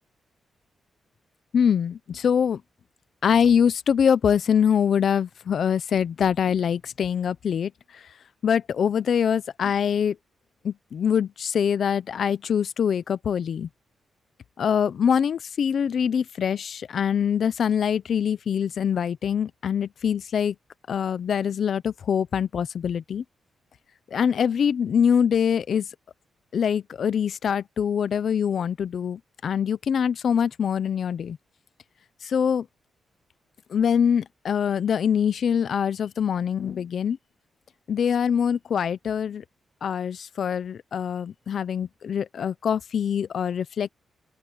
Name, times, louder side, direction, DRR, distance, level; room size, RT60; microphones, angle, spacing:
voice 1, 1.5-2.6 3.2-8.0 8.4-10.2 10.6-13.7 14.6-20.5 20.9-23.2 24.1-25.9 26.5-31.4 32.2-32.7 33.7-37.2 37.9-39.4 39.8-43.9, left 7 dB, 65° left, 0.9 m, -24 dB
open air
cardioid pair, 70°, 0 cm